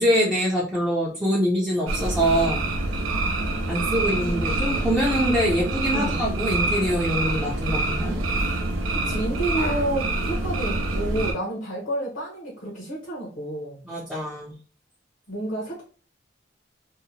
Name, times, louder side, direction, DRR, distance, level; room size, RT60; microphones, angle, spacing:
voice 1, 0.0-2.7 3.7-8.2 13.8-14.6, equal, 5° right, -7 dB, 0.5 m, -24 dB
sound 1, 1.9-11.3, right 2 dB, 90° right, 0.6 m, -26 dB
voice 2, 3.1-4.6 5.9-6.2 8.9-13.8 15.3-15.8, right 1 dB, 70° left, -3 dB, 0.8 m, -30 dB
2.8 x 2.1 x 2.6 m, 0.40 s
head